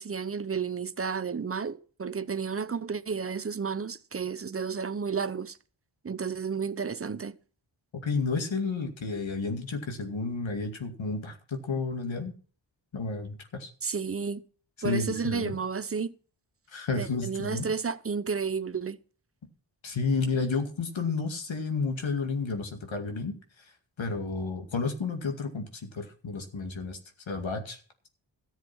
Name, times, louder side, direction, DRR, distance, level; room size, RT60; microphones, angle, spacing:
voice 1, 0.0-5.6 6.0-7.4 13.8-14.4 14.8-16.1 17.0-19.0, right 5 dB, 30° right, 0.6 m, -32 dB
voice 2, 8.0-12.3 12.9-13.7 14.8-15.6 16.7-17.7 19.8-27.0 27.3-27.8, left 4 dB, 80° left, 2.3 m, -31 dB
14.0 x 7.3 x 6.0 m
wide cardioid pair, 100°, 45 cm